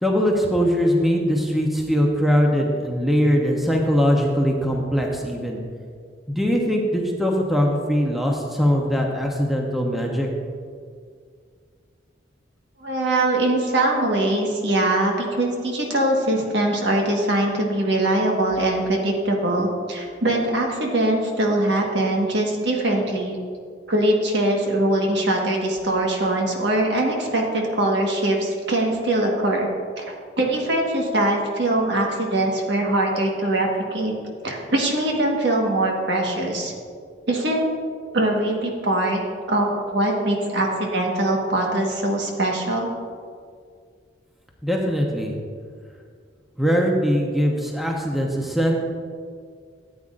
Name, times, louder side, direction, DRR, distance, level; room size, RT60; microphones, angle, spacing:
voice 1, 0.0-5.6 6.3-10.3 44.6-45.4 46.6-48.8, equal, ahead, -1 dB, 0.8 m, -21 dB
voice 2, 12.8-23.3 23.9-29.7 30.0-34.1 34.4-36.7 37.3-37.6 38.1-42.9, right 1 dB, 65° right, 0 dB, 1.5 m, -22 dB
13.5 x 8.7 x 2.5 m, 2.1 s
head